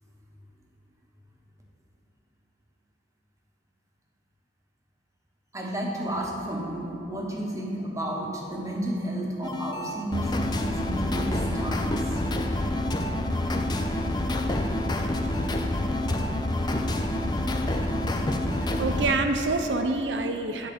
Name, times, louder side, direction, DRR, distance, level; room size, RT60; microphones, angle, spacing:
voice 1, 5.5-12.2, right 1 dB, 20° right, -2 dB, 1.1 m, -32 dB
sound 1, 9.4-19.2, left 1 dB, 25° left, 0.5 m, -27 dB
voice 2, 18.8-20.7, right 3 dB, 85° right, 5 dB, 0.7 m, -26 dB
10.5 x 3.9 x 6.7 m, 3.0 s
head